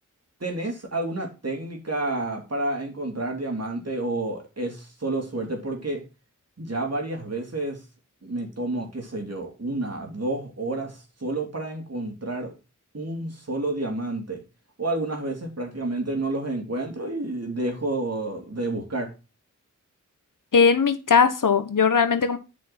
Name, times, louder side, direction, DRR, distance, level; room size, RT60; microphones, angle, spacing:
voice 1, 0.4-6.0 6.6-7.8 8.2-12.5 12.9-14.4 14.8-19.1, right 2 dB, 50° right, 2 dB, 3.3 m, -30 dB
voice 2, 20.5-22.4, left 5 dB, 80° left, 10 dB, 1.2 m, -19 dB
8.2 x 6.2 x 4.3 m, 0.29 s
cardioid pair, 45°, 32 cm